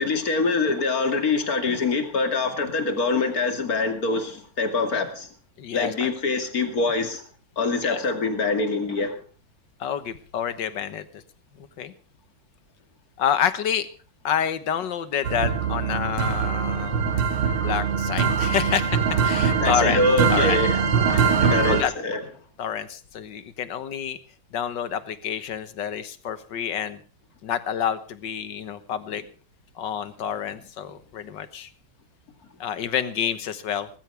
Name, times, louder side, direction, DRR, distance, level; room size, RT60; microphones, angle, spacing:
voice 1, 0.0-5.3 5.7-7.2 7.6-9.2 19.6-20.8 21.1-22.2, left 3 dB, 45° left, 7 dB, 2.8 m, -24 dB
voice 2, 5.6-6.1 7.8-8.0 9.8-11.1 11.6-11.9 13.2-13.9 14.2-17.0 17.6-20.0 20.3-20.6 21.0-21.9 22.6-24.2 24.5-27.0 27.4-29.2 29.8-31.7 32.6-33.9, left 8 dB, 65° left, 13 dB, 1.8 m, -28 dB
sound 1, 15.2-21.8, right 6 dB, 90° right, 2.5 m, -22 dB
18.5 x 15.5 x 3.4 m, 0.39 s
omnidirectional pair, 2.2 m